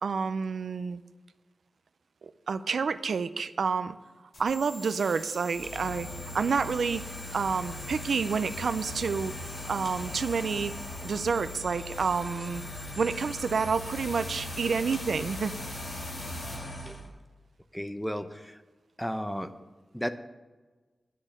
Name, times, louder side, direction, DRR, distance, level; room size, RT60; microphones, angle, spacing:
voice 1, 0.0-1.0 2.2-4.0 4.4-6.1 6.3-9.3 9.7-10.7 11.0-12.6 13.0-15.5, right 5 dB, 80° right, 13 dB, 0.4 m, -29 dB
sound 1, 4.3-16.5, left 1 dB, 55° left, 3.5 m, -45 dB
sound 2, 5.5-17.1, left 1 dB, 40° left, 2.3 m, -40 dB
voice 2, 16.5-17.0 17.7-18.6 19.0-19.5 19.9-20.1, equal, 5° left, 10 dB, 0.7 m, -34 dB
10.0 x 6.3 x 8.7 m, 1.3 s
wide cardioid pair, 115°, 0 cm